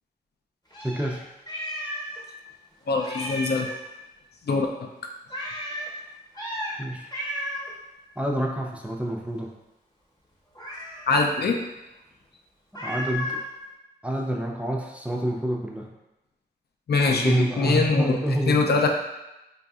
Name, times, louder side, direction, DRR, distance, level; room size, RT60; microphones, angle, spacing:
Meow, 0.7-2.2 2.5-2.6 3.0-3.8 5.3-5.9 6.3-6.8 7.1-7.7 10.6-11.1 12.7-13.5, equal, 20° left, 0.8 m, -33 dB
voice 1, 0.8-1.2 6.8-7.1 8.2-9.5 12.8-13.4 14.0-15.9 17.1-18.6, right 1 dB, 5° right, 0 dB, 0.4 m, -27 dB
voice 2, 2.9-3.7 4.5-4.9 11.1-11.6 16.9-18.9, left 4 dB, 70° left, 2 dB, 0.4 m, -23 dB
3.9 x 2.6 x 2.3 m, 0.96 s
wide cardioid pair, 80°, 17 cm